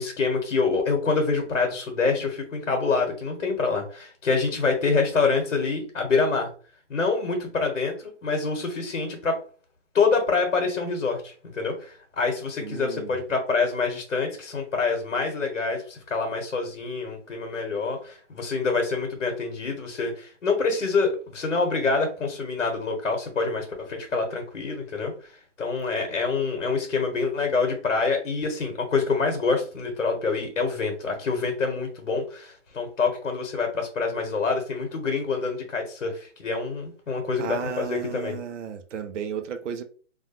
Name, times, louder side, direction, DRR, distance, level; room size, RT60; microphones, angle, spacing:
voice 1, 0.0-6.5 6.9-9.4 9.9-38.4, left 4 dB, 80° left, 1.0 m, -26 dB
voice 2, 12.6-13.2 37.4-39.8, right 8 dB, 70° right, 0.5 m, -34 dB
2.4 x 2.2 x 2.7 m
hypercardioid pair, 145°, 38 cm